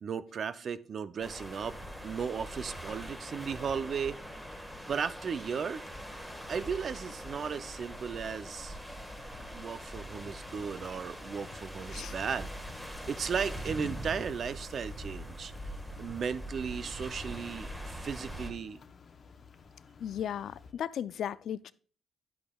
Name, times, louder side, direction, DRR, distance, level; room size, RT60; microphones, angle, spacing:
voice 1, 0.0-4.3 4.9-5.9 6.5-8.8 9.5-12.5 13.1-15.5 16.0-18.8, right 6 dB, 50° right, 0.5 m, -36 dB
sound 1, 1.2-18.5, equal, 5° right, 1.4 m, -43 dB
sound 2, 3.2-20.7, left 5 dB, 45° left, 0.8 m, -55 dB
Explosion, 3.4-6.0 6.3-6.4, equal, 25° right, 1.8 m, -56 dB
voice 2, 20.0-21.7, left 9 dB, 70° left, 0.3 m, -36 dB
10.5 x 8.6 x 2.3 m
cardioid pair, 90°, 0 cm